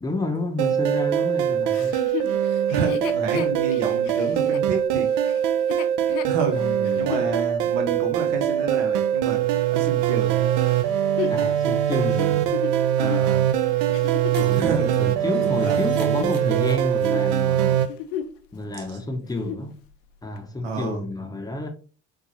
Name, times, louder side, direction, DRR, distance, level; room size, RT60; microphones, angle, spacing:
voice 1, 0.0-2.0 6.5-7.2 11.3-12.5 14.4-17.9 18.5-19.7 20.2-21.7, left 2 dB, 10° left, 0.6 m, -30 dB
sound 1, 0.6-17.9, right 10 dB, 65° right, 0.5 m, -22 dB
Chuckle chortle, 1.7-7.3 7.9-8.0 10.6-14.6 15.2-16.7 17.0-17.3 17.7-18.4 18.7-18.8 19.2-19.7 20.4-20.5, left 10 dB, 65° left, 0.5 m, -34 dB
voice 2, 2.7-5.1 6.2-6.6 7.0-9.4 9.7-10.5 13.0-13.5 14.5-15.0 15.4-15.8 20.6-21.0, right 4 dB, 80° right, 0.9 m, -29 dB
Shatter, 14.3-17.4 17.7-17.8 18.1-18.2, right 2 dB, 30° right, 1.2 m, -46 dB
3.7 x 2.2 x 3.0 m
hypercardioid pair, 70°, 36 cm